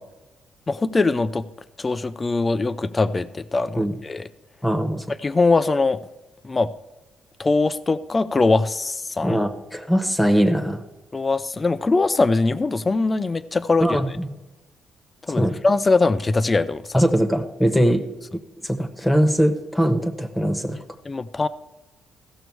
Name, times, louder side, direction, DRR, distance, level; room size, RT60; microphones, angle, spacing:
voice 1, 0.7-1.4 1.8-4.3 5.2-6.0 6.4-6.7 7.4-9.4 11.1-14.0 15.2-17.0 21.1-21.5, left 3 dB, 25° left, 0.5 m, -21 dB
voice 2, 4.6-5.0 9.2-10.8 13.8-14.3 15.3-15.5 16.9-18.0 18.6-20.8, equal, 5° left, 1.2 m, -21 dB
16.0 x 6.5 x 4.7 m
cardioid pair, 115°, 0 cm